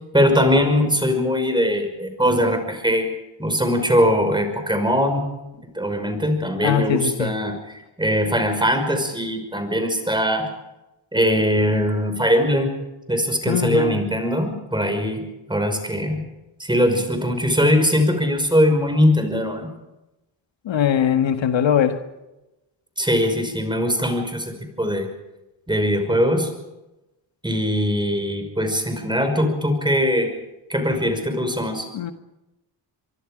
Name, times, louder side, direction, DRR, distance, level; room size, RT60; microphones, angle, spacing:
voice 1, 0.1-3.1 3.4-5.2 5.7-7.6 8.0-10.5 11.1-12.7 13.1-15.2 15.5-16.2 16.6-19.7 23.0-24.5 24.8-25.1 25.7-26.5 27.4-30.3 30.7-31.9, equal, 10° right, 6 dB, 5.7 m, -21 dB
voice 2, 6.6-7.3 13.5-14.1 20.7-22.0 31.9-32.1, left 9 dB, 70° left, 7 dB, 1.7 m, -21 dB
25.0 x 24.0 x 5.2 m, 0.97 s
cardioid pair, 100°, 47 cm